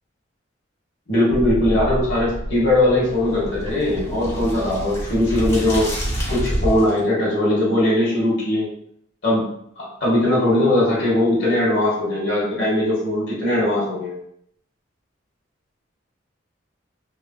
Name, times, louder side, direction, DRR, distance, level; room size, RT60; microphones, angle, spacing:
voice 1, 1.1-5.9 6.3-8.7 9.2-9.4 9.8-14.1, left 1 dB, 60° left, -7 dB, 1.0 m, -20 dB
sound 1, 1.3-7.0, equal, 15° left, 0.9 m, -28 dB
3.2 x 2.5 x 2.2 m, 0.71 s
head